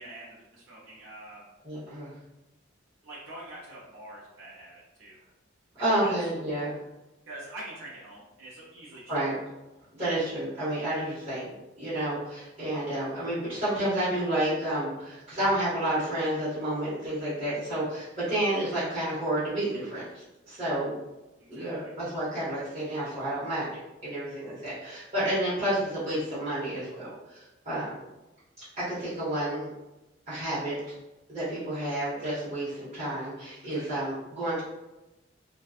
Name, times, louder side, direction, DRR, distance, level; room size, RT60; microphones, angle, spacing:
voice 1, 0.0-1.4 3.0-5.2 5.7-6.2 7.3-9.2 11.8-12.0 17.2-17.4 21.4-21.7 33.7-33.9, right 1 dB, 90° right, -6 dB, 0.6 m, -45 dB
voice 2, 1.6-2.1 5.8-6.7 9.1-9.4 9.9-20.9 21.5-27.9 28.6-29.7 30.3-30.8 31.3-34.6, right 1 dB, 30° right, -13 dB, 0.9 m, -30 dB
2.5 x 2.2 x 2.4 m, 0.99 s
head